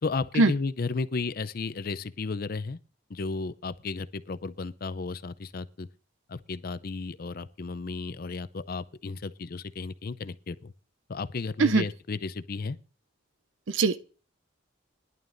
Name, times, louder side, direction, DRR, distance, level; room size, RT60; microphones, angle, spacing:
voice 1, 0.0-2.8 3.1-5.9 6.3-10.7 11.1-12.8, left 4 dB, 50° left, 0.5 m, -33 dB
voice 2, 13.7-14.0, right 3 dB, 85° right, 0.6 m, -21 dB
19.5 x 11.0 x 2.6 m
head